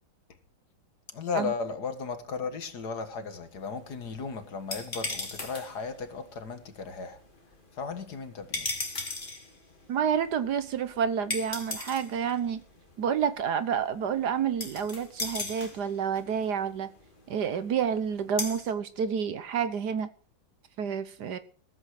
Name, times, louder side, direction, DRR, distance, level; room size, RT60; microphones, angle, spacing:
voice 1, 1.1-7.2 7.7-8.7, left 5 dB, 60° left, 2.1 m, -35 dB
sound 1, 3.4-18.7, left 2 dB, 25° left, 2.7 m, -40 dB
voice 2, 9.9-12.6 13.0-16.9 17.3-20.1 20.8-21.4, right 7 dB, 65° right, 1.4 m, -29 dB
14.5 x 14.0 x 4.9 m
omnidirectional pair, 2.1 m